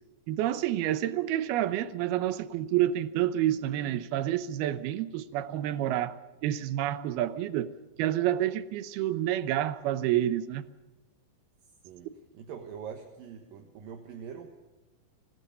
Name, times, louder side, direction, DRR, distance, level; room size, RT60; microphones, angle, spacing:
voice 1, 0.3-7.7 8.0-10.7, right 12 dB, 90° right, 2.9 m, -29 dB
voice 2, 12.3-14.5, right 7 dB, 70° right, 3.1 m, -43 dB
25.5 x 18.0 x 6.8 m
omnidirectional pair, 4.3 m